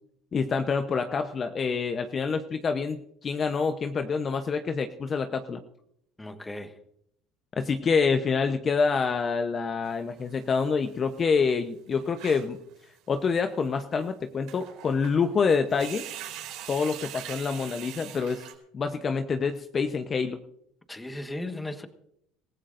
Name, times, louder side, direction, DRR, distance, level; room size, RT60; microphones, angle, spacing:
voice 1, 0.3-5.6 7.6-12.6 13.1-16.0 16.7-18.4 18.7-20.4, left 5 dB, 35° left, 0.9 m, -27 dB
voice 2, 6.2-6.8 20.9-21.9, left 1 dB, 10° left, 1.4 m, -36 dB
sound 1, 9.8-10.6 10.8-10.9 11.2-11.3 11.5-11.6 11.9-12.6 13.2-13.4 14.0-14.1 14.5-15.1 15.4-18.5, right 12 dB, 70° right, 4.2 m, -42 dB
26.0 x 15.5 x 2.6 m
supercardioid pair, 105°, 0 cm